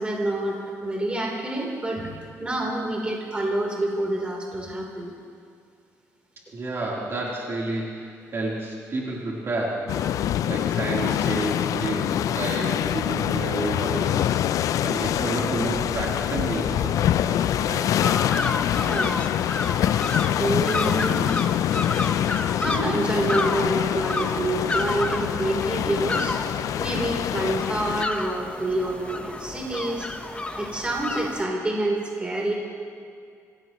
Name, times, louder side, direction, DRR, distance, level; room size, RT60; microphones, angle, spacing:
voice 1, 0.0-2.1 2.4-5.1 17.2-17.4 18.7-19.2 19.5-19.7 20.4-21.3 22.6-26.4 26.8-30.1 30.6-32.5, right 1 dB, 20° right, -2 dB, 3.6 m, -27 dB
voice 2, 6.5-10.0 10.4-14.3 14.8-17.0 17.2-17.8, right 2 dB, 45° right, -4 dB, 3.5 m, -30 dB
storm sea close, 9.9-28.0, left 11 dB, 70° left, 0.4 m, -25 dB
sound 1, 18.0-31.4, left 2 dB, 20° left, 1.1 m, -31 dB
25.5 x 17.0 x 3.1 m, 2.3 s
cardioid pair, 100°, 6 cm